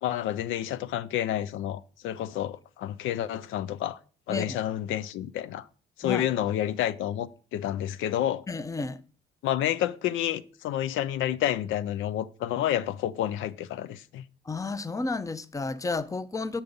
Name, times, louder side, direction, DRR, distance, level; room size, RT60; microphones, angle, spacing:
voice 1, 0.0-4.0 4.3-5.7 6.0-8.4 9.4-14.2, left 12 dB, 85° left, 0.5 m, -29 dB
voice 2, 4.3-4.6 6.0-6.2 8.5-9.0 14.4-16.6, left 3 dB, 15° left, 0.6 m, -31 dB
7.1 x 5.4 x 5.2 m
cardioid pair, 90°, 20 cm